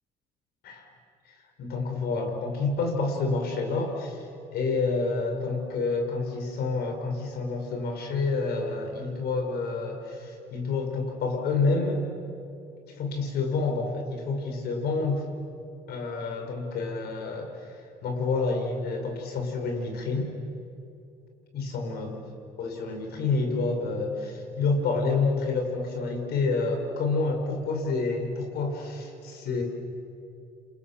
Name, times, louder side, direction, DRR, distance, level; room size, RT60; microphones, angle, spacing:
voice 1, 1.6-4.2 4.5-12.0 12.9-15.2 15.9-20.3 21.5-22.2 22.6-29.6, left 3 dB, 70° left, 3 dB, 6.0 m, -28 dB
29.0 x 27.0 x 7.5 m, 2.7 s
cardioid pair, 110°, 17 cm